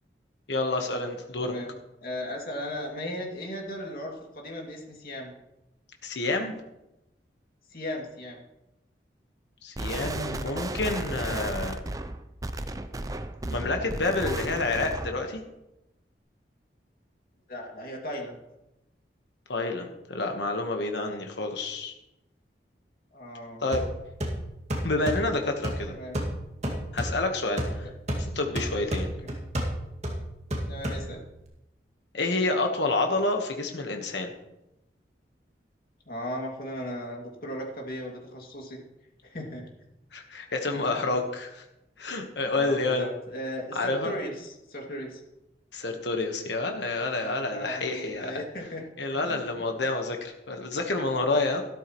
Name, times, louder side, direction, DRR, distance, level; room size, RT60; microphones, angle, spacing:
voice 1, 0.5-1.5 6.0-6.5 9.6-11.8 13.5-15.4 19.5-21.9 23.6-23.8 24.8-25.9 26.9-27.9 28.2-29.1 32.1-34.3 40.1-41.6 42.0-43.1 43.7-44.1 45.7-48.4 49.0-51.6, left 2 dB, 85° left, 4 dB, 1.3 m, -28 dB
voice 2, 1.4-5.3 7.7-8.4 17.5-18.4 23.1-23.6 25.8-26.2 29.2-29.3 30.7-31.2 36.1-38.8 39.2-39.7 40.7-41.0 42.4-45.2 47.5-48.8 49.1-49.6, equal, 55° left, 0 dB, 2.4 m, -37 dB
sound 1, 9.8-15.2, right 2 dB, 20° right, 0.5 m, -34 dB
sound 2, 23.7-31.4, equal, 40° right, 2.1 m, -33 dB
13.0 x 12.5 x 3.1 m, 0.91 s
head